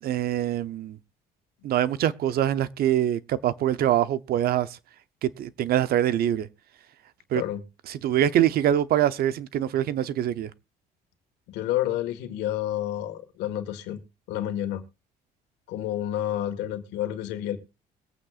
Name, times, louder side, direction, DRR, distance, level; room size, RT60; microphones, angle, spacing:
voice 1, 0.0-1.0 1.6-4.8 5.2-6.5 7.3-7.4 7.9-10.5, right 11 dB, 65° right, 0.8 m, -24 dB
voice 2, 11.5-14.0 14.3-14.8 15.7-17.6, left 12 dB, 90° left, 1.8 m, -29 dB
22.0 x 8.7 x 2.5 m
cardioid pair, 110°, 17 cm